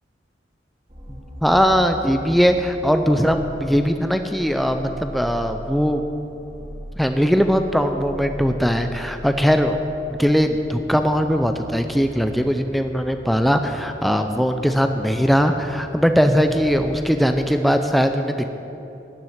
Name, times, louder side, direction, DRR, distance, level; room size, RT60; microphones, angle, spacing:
sound 1, 0.9-17.5, equal, 30° right, 2.0 m, -40 dB
voice 1, 1.4-6.0 7.0-9.8 10.1-18.5, equal, ahead, 6 dB, 0.4 m, -20 dB
12.0 x 7.4 x 9.5 m, 2.9 s
head